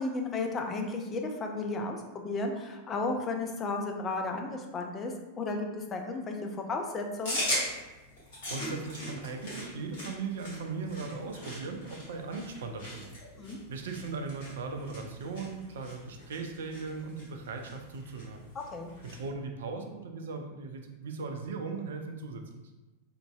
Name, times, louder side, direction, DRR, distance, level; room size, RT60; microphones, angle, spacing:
voice 1, 0.0-7.4 13.4-13.6 18.5-18.9, left 3 dB, 25° left, 3 dB, 0.4 m, -34 dB
sound 1, 7.2-19.3, left 1 dB, 55° left, 1.2 m, -40 dB
voice 2, 8.5-13.1 13.7-18.5 19.0-22.7, right 4 dB, 60° right, 4 dB, 0.3 m, -38 dB
2.9 x 2.6 x 2.2 m, 1.1 s
figure-of-eight pair, 90°, 0 cm